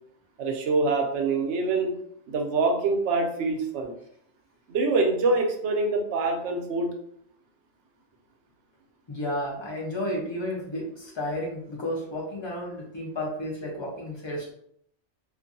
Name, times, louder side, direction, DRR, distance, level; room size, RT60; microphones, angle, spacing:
voice 1, 0.4-1.9 2.3-3.9 4.7-6.9, right 3 dB, 75° right, 2 dB, 0.9 m, -25 dB
voice 2, 9.1-14.5, left 1 dB, 30° left, -3 dB, 0.6 m, -32 dB
2.5 x 2.5 x 2.6 m, 0.69 s
omnidirectional pair, 1.2 m